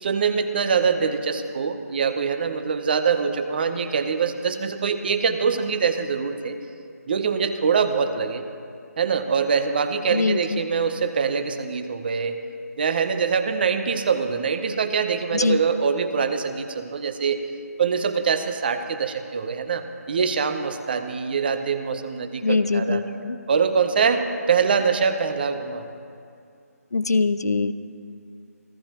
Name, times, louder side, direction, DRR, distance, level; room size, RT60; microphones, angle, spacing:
voice 1, 0.0-6.6 7.1-8.4 9.0-12.3 12.8-17.5 17.8-23.0 23.5-25.8, right 6 dB, 35° right, 9 dB, 0.9 m, -24 dB
voice 2, 10.1-10.6 15.3-15.6 22.4-23.4 26.9-27.7, left 3 dB, 80° left, 14 dB, 0.7 m, -22 dB
28.5 x 12.5 x 3.0 m, 2.4 s
figure-of-eight pair, 160°, 9 cm